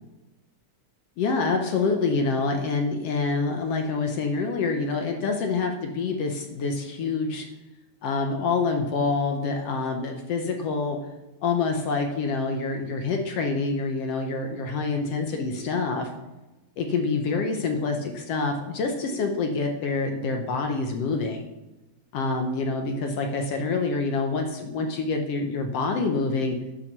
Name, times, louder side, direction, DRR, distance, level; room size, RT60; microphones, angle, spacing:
voice 1, 1.2-7.5 8.0-11.0 11.4-16.1 16.8-21.4 22.1-26.6, left 4 dB, 65° left, 4 dB, 1.6 m, -26 dB
10.5 x 5.7 x 6.6 m, 1.0 s
omnidirectional pair, 3.6 m